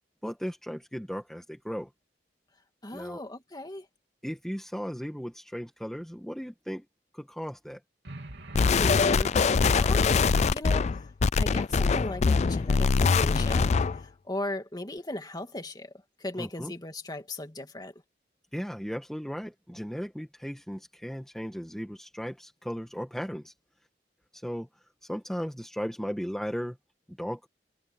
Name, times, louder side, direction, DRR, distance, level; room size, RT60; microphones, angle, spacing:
voice 1, 0.2-1.9 2.9-3.2 4.2-6.8 7.1-7.8 16.4-16.7 18.5-23.5 24.3-26.8 27.2-27.5, equal, 5° left, 1.5 m, -36 dB
voice 2, 2.8-3.9 8.6-11.0 11.4-15.9 16.2-17.9, left 1 dB, 25° left, 2.4 m, -37 dB
sound 1, 8.0-10.1, right 2 dB, 75° right, 3.1 m, -46 dB
sound 2, 8.5-14.0, left 5 dB, 40° left, 0.4 m, -23 dB
head